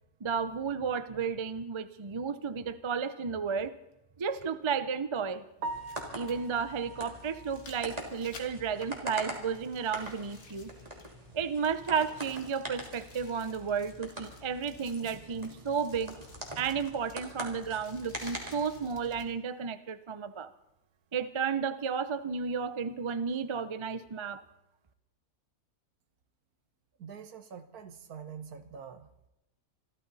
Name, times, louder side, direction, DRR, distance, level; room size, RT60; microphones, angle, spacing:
voice 1, 0.2-3.7 4.2-5.4 6.1-10.7 11.3-16.2 16.5-20.5 21.1-24.4, right 6 dB, 45° right, 12 dB, 0.4 m, -33 dB
sound 1, 2.4-2.5 4.4-4.5 5.6-11.3 11.6-19.3 19.9-20.0, left 4 dB, 55° left, 2.2 m, -56 dB
sound 2, 5.6-19.2, right 1 dB, 25° right, 3.0 m, -44 dB
Piano, 5.6-9.6 9.9-10.1 10.5-10.6 11.0-11.1 14.2-14.3 22.8-23.0, right 2 dB, 80° right, 1.7 m, -45 dB
voice 2, 27.0-29.3, right 7 dB, 65° right, 10 dB, 1.6 m, -45 dB
26.0 x 13.5 x 4.1 m, 0.91 s
omnidirectional pair, 1.7 m